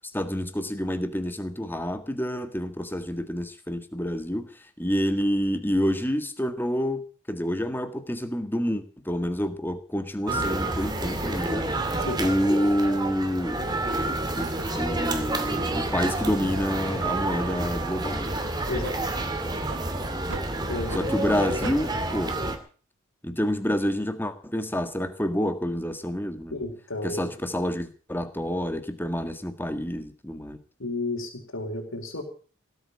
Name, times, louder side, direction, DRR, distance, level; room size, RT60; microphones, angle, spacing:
voice 1, 0.0-7.0 7.3-11.6 12.2-13.6 14.4-18.4 20.9-22.4 23.2-26.6 27.0-30.6, equal, 10° left, 8 dB, 1.8 m, -28 dB
sound 1, 10.3-22.6, right 2 dB, 20° right, 2.4 m, -29 dB
sound 2, 12.9-13.0 13.7-14.0 14.4-17.8 18.2-18.4 18.8-19.0 19.6-19.8 20.3-20.5 20.9-21.1 21.6-21.8, right 3 dB, 65° right, 1.5 m, -41 dB
voice 2, 20.7-21.3 26.5-27.3 30.8-32.2, left 2 dB, 75° left, 0 dB, 4.5 m, -32 dB
18.0 x 8.4 x 8.5 m, 0.40 s
head